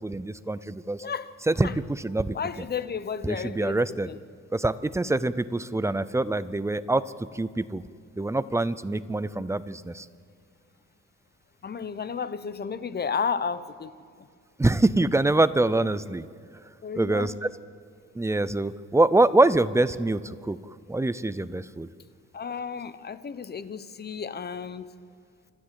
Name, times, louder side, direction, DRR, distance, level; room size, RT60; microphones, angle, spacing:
voice 1, 0.0-1.0 1.5-2.4 3.2-4.1 4.5-7.0 7.3-7.8 8.2-10.1 14.6-16.2 17.0-17.5 18.2-20.6 20.9-21.9, right 2 dB, 10° right, 0.5 m, -25 dB
voice 2, 1.0-1.3 1.6-1.7 2.3-4.2 11.6-13.9 14.2-14.3 16.8-17.5 22.3-24.9, left 6 dB, 35° left, 0.8 m, -33 dB
26.5 x 13.0 x 7.6 m
wide cardioid pair, 145°, 30 cm